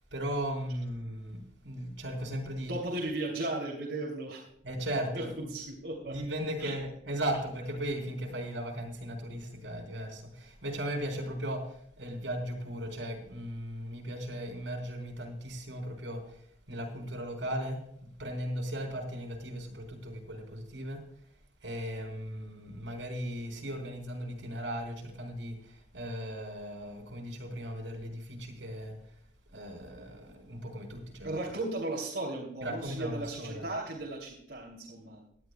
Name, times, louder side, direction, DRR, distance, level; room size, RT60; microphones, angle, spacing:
voice 1, 0.1-2.7 4.6-5.5 6.1-21.0 21.6-28.9 29.5-31.4 32.6-33.7, equal, 90° right, 2 dB, 4.4 m, -37 dB
voice 2, 2.6-4.4 5.1-6.1 6.6-6.7 31.2-35.2, right 2 dB, 70° right, -3 dB, 2.9 m, -36 dB
19.0 x 12.0 x 2.3 m, 0.70 s
head